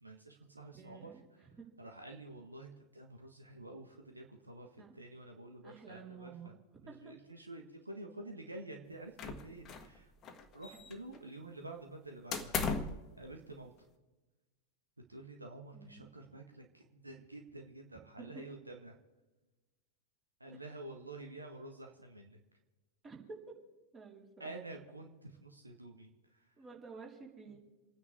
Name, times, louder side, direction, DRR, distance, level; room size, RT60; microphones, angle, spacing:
voice 1, 0.0-1.5 1.8-6.5 6.8-10.1 10.5-12.6 13.2-13.7 15.1-19.0 20.4-22.4 24.4-26.4, right 2 dB, 80° right, 3 dB, 1.6 m, -49 dB
voice 2, 0.7-1.2 1.6-1.7 4.8-5.0 5.6-6.5 6.9-7.2 15.7-16.1 20.5-20.6 23.0-23.2 23.9-24.5 26.6-27.6, right 5 dB, 20° right, -3 dB, 4.4 m, -52 dB
sound 1, 9.2-10.0 10.2-11.2 12.3-13.0, left 5 dB, 30° left, 1.5 m, -37 dB
29.0 x 9.7 x 3.7 m, 1.2 s
figure-of-eight pair, 90°, 0 cm